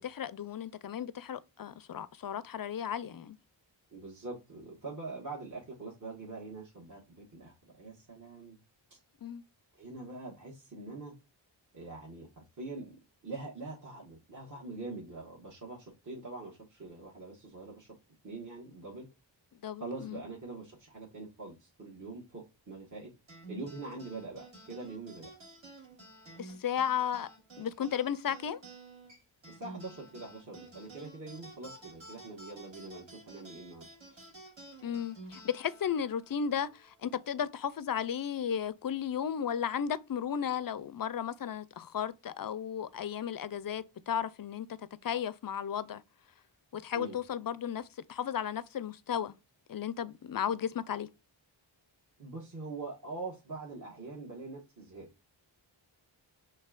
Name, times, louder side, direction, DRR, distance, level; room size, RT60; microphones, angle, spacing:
voice 1, 0.0-3.4 9.2-9.4 19.6-20.2 26.4-27.3 27.6-28.6 34.8-44.7 45.0-46.0 46.7-49.3 49.7-51.1, left 8 dB, 50° left, 0.4 m, -34 dB
voice 2, 3.9-8.6 8.9-9.0 9.8-11.1 11.7-13.0 13.2-17.9 18.2-19.1 19.8-23.1 23.5-25.3 29.5-34.2 46.9-47.2 52.2-55.1, right 3 dB, 40° right, 1.3 m, -44 dB
sound 1, 23.3-38.0, right 2 dB, 75° right, 2.4 m, -52 dB
5.5 x 3.3 x 2.3 m
wide cardioid pair, 80°, 48 cm